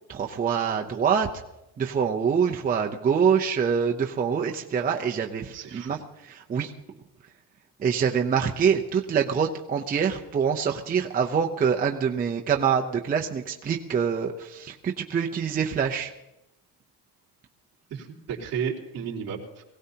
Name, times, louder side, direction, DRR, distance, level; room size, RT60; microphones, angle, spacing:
voice 1, 0.1-1.3 1.8-6.7 7.8-16.1, right 7 dB, 20° right, 2 dB, 0.6 m, -25 dB
voice 2, 5.5-5.9 17.9-19.6, right 7 dB, 40° right, -6 dB, 3.3 m, -33 dB
23.0 x 17.0 x 2.8 m, 0.91 s
cardioid pair, 165°, 40 cm